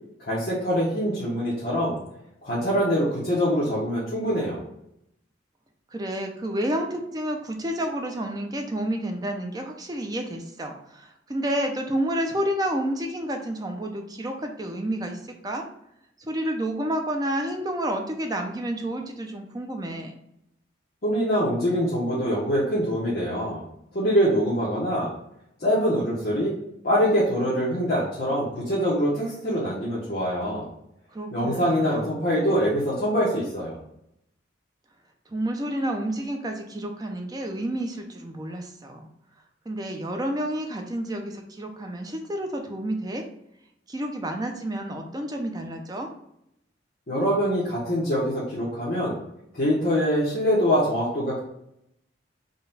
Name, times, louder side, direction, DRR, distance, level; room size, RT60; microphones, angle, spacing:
voice 1, 0.2-2.0 2.4-4.6 21.0-23.6 23.9-25.1 25.6-26.5 26.8-30.7 31.3-33.8 47.1-49.2 49.5-51.4, equal, 50° left, -8 dB, 0.9 m, -24 dB
voice 2, 5.9-15.6 16.2-20.1 31.1-32.1 35.3-39.1 39.7-43.2 43.9-46.1, right 1 dB, 20° right, 3 dB, 0.5 m, -30 dB
3.9 x 2.3 x 3.9 m, 0.78 s
head